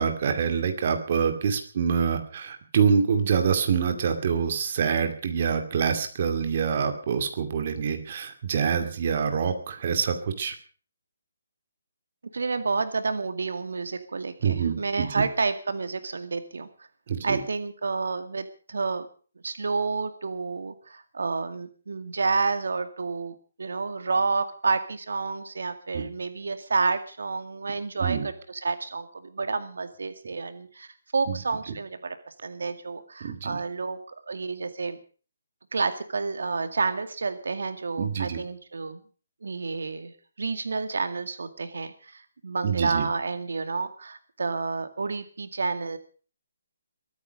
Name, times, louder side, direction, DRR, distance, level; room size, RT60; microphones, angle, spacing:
voice 1, 0.0-10.5 14.4-15.2 17.1-17.4 25.9-26.0 28.0-28.3 31.3-31.4 33.2-33.6 38.0-38.4 42.6-43.1, right 6 dB, 35° right, 6 dB, 2.5 m, -26 dB
voice 2, 12.3-16.7 17.2-19.1 19.4-32.2 32.4-34.0 34.3-35.0 35.7-39.0 39.4-46.0, right 4 dB, 75° right, 9 dB, 2.1 m, -30 dB
22.5 x 9.4 x 6.5 m, 0.40 s
hypercardioid pair, 175°, 0 cm